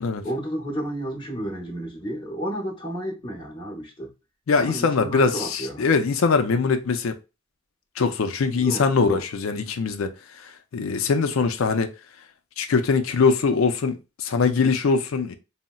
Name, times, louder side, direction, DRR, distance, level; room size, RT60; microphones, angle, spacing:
voice 1, 0.2-4.1 4.6-5.9 8.5-9.2, right 1 dB, 25° left, 0.8 m, -32 dB
voice 2, 4.5-7.2 8.0-10.1 10.4-11.9 12.6-15.3, left 4 dB, 70° left, 0.4 m, -22 dB
3.9 x 2.0 x 2.3 m
head